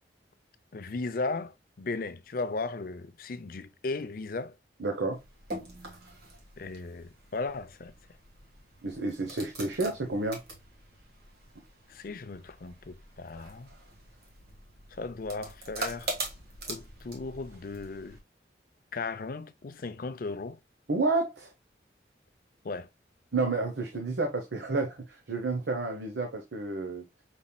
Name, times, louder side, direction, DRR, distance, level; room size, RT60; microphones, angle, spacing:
voice 1, 0.7-4.5 6.6-7.9 11.9-13.7 14.9-16.1 16.7-18.2 18.9-20.6 22.6-22.9, left 3 dB, 50° left, 0.5 m, -36 dB
voice 2, 4.8-5.2 8.8-10.4 20.9-21.5 23.3-27.1, right 3 dB, 80° right, 0.9 m, -30 dB
sound 1, 5.1-18.2, right 2 dB, 60° right, 1.6 m, -43 dB
5.4 x 4.1 x 2.2 m
head